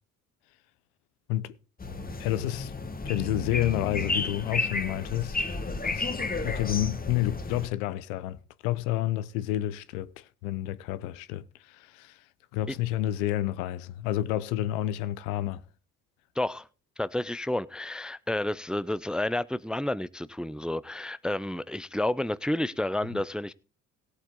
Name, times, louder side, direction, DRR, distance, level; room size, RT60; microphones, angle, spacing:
sound 1, 1.8-7.7, left 3 dB, 20° left, 1.4 m, -32 dB
voice 1, 2.2-2.7 3.0-5.4 5.9-6.1 6.4-12.2 12.5-15.6 23.1-23.2, left 14 dB, 80° left, 0.8 m, -30 dB
voice 2, 16.4-16.7 17.0-23.5, left 1 dB, ahead, 0.5 m, -30 dB
17.5 x 8.1 x 3.8 m
hypercardioid pair, 55°, 43 cm